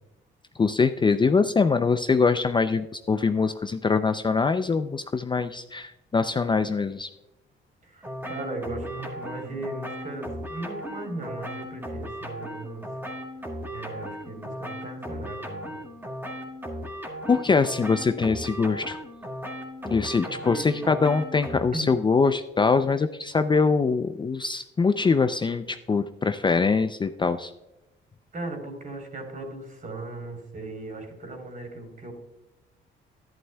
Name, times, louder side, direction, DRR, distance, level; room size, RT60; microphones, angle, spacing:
voice 1, 0.6-7.1 17.3-19.0 19.8-27.5, left 4 dB, 25° left, 10 dB, 0.4 m, -23 dB
voice 2, 7.8-13.0 13.7-15.8 20.3-20.9 21.7-22.0 28.3-32.1, right 2 dB, 40° right, 3 dB, 3.5 m, -37 dB
sound 1, 8.0-21.6, equal, 10° right, 2.0 m, -37 dB
11.5 x 11.0 x 2.2 m, 0.94 s
cardioid pair, 90°, 20 cm